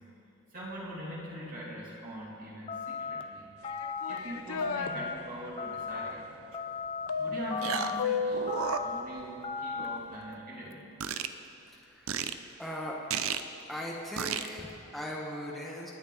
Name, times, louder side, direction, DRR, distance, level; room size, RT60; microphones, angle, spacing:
voice 1, 0.5-3.5 4.1-6.4 7.2-8.4 8.8-10.9, right 1 dB, 40° right, -6 dB, 2.7 m, -42 dB
sound 1, 2.7-3.2 3.6-4.2 4.6-5.1 5.6-6.1 6.5-7.1 7.5-8.0 8.5-9.0 9.4-10.0, left 5 dB, 25° left, 0.6 m, -36 dB
sound 2, 3.6-4.9 7.1-8.7, left 5 dB, 75° left, 0.6 m, -33 dB
sound 3, 6.5-6.6 7.6-8.1 8.3-9.5 9.8-9.9 11.0-11.3 12.1-12.3 13.1-13.4 14.2-14.5, right 7 dB, 70° right, 0.6 m, -32 dB
voice 2, 11.8-12.1 12.6-13.0 13.7-15.9, equal, ahead, -4 dB, 1.3 m, -39 dB
29.0 x 9.8 x 4.1 m, 2.9 s
head